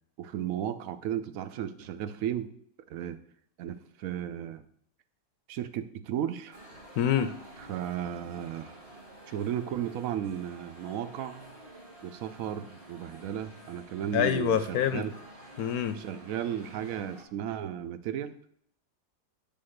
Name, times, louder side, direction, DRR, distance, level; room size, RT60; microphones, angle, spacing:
voice 1, 0.2-2.5 2.9-3.2 3.6-4.6 5.5-6.6 7.7-8.8 9.3-11.4 12.0-15.1 16.0-18.3, right 10 dB, 65° right, 11 dB, 0.9 m, -34 dB
sound 1, 6.5-17.3, right 1 dB, 25° right, 1.3 m, -50 dB
voice 2, 7.0-7.3 14.1-15.0 15.6-16.0, left 9 dB, 70° left, 10 dB, 0.9 m, -26 dB
9.2 x 3.5 x 6.4 m, 0.65 s
omnidirectional pair, 1.8 m